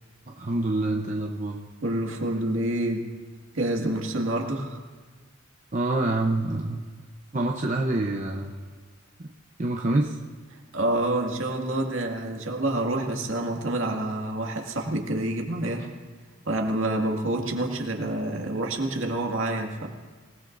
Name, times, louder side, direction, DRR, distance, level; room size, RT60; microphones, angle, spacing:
voice 1, 0.3-1.6 5.7-6.9 7.3-8.6 9.2-9.3 9.6-10.2, right 2 dB, 35° right, 1 dB, 0.8 m, -26 dB
voice 2, 1.8-3.0 3.5-4.8 10.7-15.9 16.4-19.9, right 1 dB, 70° right, 1 dB, 2.1 m, -27 dB
26.5 x 18.0 x 2.6 m, 1.4 s
head